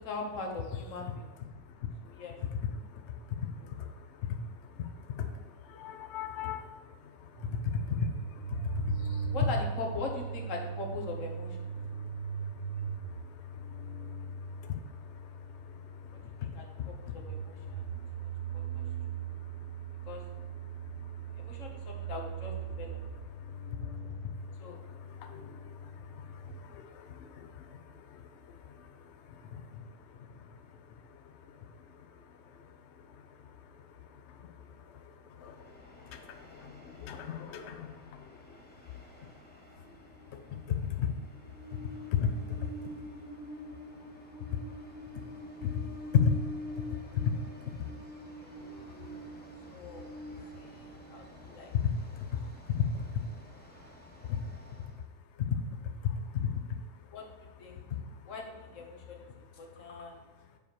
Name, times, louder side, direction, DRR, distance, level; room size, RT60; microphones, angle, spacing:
voice 1, 0.0-1.2 2.0-2.3 9.3-11.7 16.4-16.6 17.0-17.8 18.2-18.8 19.1-19.3 20.0-20.2 21.4-23.0 24.6-24.8 49.7-50.0 50.5-51.7 57.1-57.2 57.6-57.8 58.2-60.2, left 3 dB, 50° left, 1 dB, 1.3 m, -41 dB
voice 2, 3.1-3.9 4.2-4.4 4.8-4.9 5.2-9.3 14.6-14.8 16.8-16.9 19.6-19.7 23.7-23.9 25.0-28.2 28.8-29.9 34.4-34.5 35.4-38.4 40.7-41.1 42.2-42.7 45.6-45.8 46.1-46.4 47.2-47.3 48.9-49.2 51.8-51.9 52.7-53.1 54.3-54.4 55.5-55.6 56.0-56.5 57.9-58.0, left 7 dB, 80° left, 7 dB, 0.6 m, -34 dB
sound 1, 7.3-26.5, right 6 dB, 65° right, 1.1 m, -39 dB
Train, 35.5-55.0, left 1 dB, 5° left, 0.8 m, -47 dB
7.2 x 4.8 x 4.7 m, 1.2 s
omnidirectional pair, 1.9 m